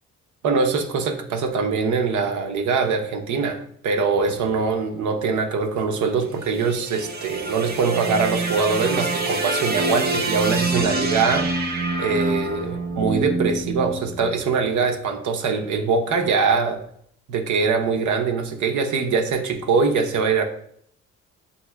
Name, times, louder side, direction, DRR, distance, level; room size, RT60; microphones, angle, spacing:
voice 1, 0.4-11.5 12.0-16.8 17.3-20.4, right 5 dB, 70° right, 4 dB, 0.7 m, -23 dB
sound 1, 6.2-14.6, right 2 dB, 30° right, 0.7 m, -26 dB
7.0 x 2.6 x 2.2 m, 0.66 s
cardioid pair, 90°, 30 cm